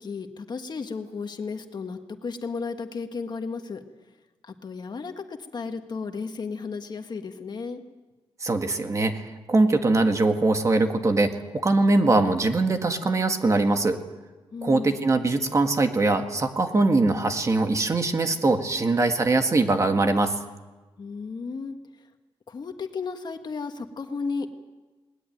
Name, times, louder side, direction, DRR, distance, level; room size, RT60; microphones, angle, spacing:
voice 1, 0.0-3.8 4.4-7.8 14.5-15.0 21.0-21.8 22.5-24.5, left 4 dB, 45° left, 6 dB, 1.7 m, -34 dB
voice 2, 8.4-14.0 14.6-20.3, right 2 dB, 30° right, 6 dB, 1.8 m, -22 dB
20.0 x 20.0 x 9.2 m, 1.2 s
wide cardioid pair, 140°, 10 cm